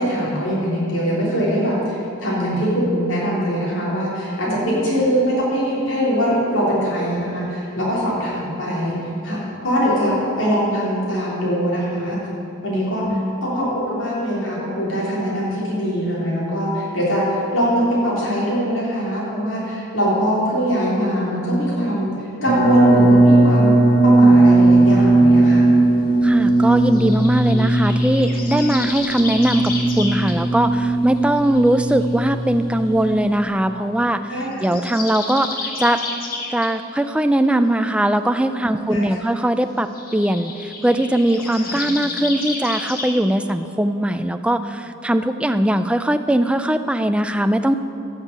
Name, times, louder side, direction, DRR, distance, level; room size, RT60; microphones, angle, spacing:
voice 1, 0.0-12.2 12.6-23.7 24.0-25.6 34.3-34.5 38.9-39.1 41.6-41.8, equal, 75° left, -7 dB, 3.5 m, -22 dB
voice 2, 4.5-4.9 13.0-13.3 26.2-34.3 34.6-36.0 36.5-47.8, right 1 dB, 5° right, 9 dB, 0.3 m, -20 dB
sound 1, 22.5-33.4, right 2 dB, 20° left, 3.1 m, -16 dB
sound 2, 26.9-30.4 30.9-32.1 33.1-33.2 34.5-36.8 39.9-43.1, left 3 dB, 45° left, 1.4 m, -31 dB
15.5 x 6.4 x 6.7 m, 2.8 s
head